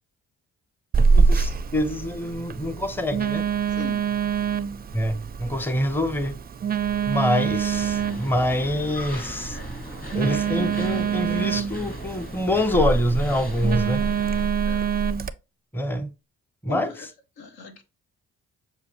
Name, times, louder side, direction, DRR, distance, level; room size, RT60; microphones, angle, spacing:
Telephone, 0.9-15.3, right 6 dB, 25° right, 0.4 m, -25 dB
voice 1, 1.1-3.4 4.9-6.3 7.1-9.6 10.1-14.0 15.7-16.1 16.6-16.9, left 1 dB, 5° left, 0.7 m, -25 dB
voice 2, 3.8-4.1 14.6-14.9 16.7-17.1 17.4-17.8, left 4 dB, 80° left, 0.9 m, -38 dB
sound 1, 7.7-14.5, left 1 dB, 25° left, 1.4 m, -38 dB
6.8 x 2.3 x 3.0 m
supercardioid pair, 50°, 36 cm